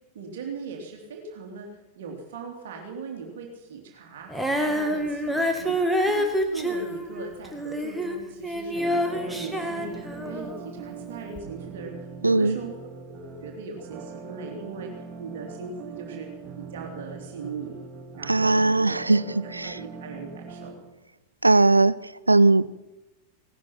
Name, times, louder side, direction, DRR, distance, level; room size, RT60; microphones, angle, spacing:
voice 1, 0.1-1.7 1.9-16.3 16.6-17.8 18.1-20.7, right 4 dB, 55° right, 1 dB, 2.9 m, -39 dB
Female singing, 4.3-10.7 11.4-11.5, equal, ahead, 2.0 m, -27 dB
sound 1, 8.7-20.7, right 5 dB, 30° right, 3.3 m, -42 dB
voice 2, 12.2-12.6 18.3-19.8 21.4-22.0 22.3-22.7, right 2 dB, 85° right, 20 dB, 0.5 m, -19 dB
17.5 x 12.5 x 6.0 m, 1.0 s
figure-of-eight pair, 90°, 0 cm